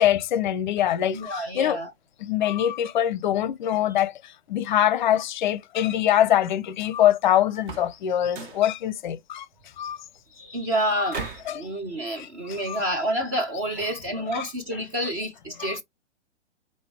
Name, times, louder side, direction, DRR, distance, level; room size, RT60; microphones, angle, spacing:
voice 1, 0.0-1.8 2.2-4.1 4.5-9.5 9.8-10.0 11.5-11.6 12.2-12.8 13.9-14.0 14.3-14.5 15.6-15.8, left 11 dB, 45° left, 0.5 m, -24 dB
voice 2, 1.1-1.9 10.4-15.8, right 1 dB, 15° right, 0.4 m, -29 dB
sound 1, 7.6-8.0 8.3-8.7 11.1-11.6, right 4 dB, 45° right, 1.4 m, -36 dB
4.9 x 2.6 x 3.3 m
hypercardioid pair, 125°, 35 cm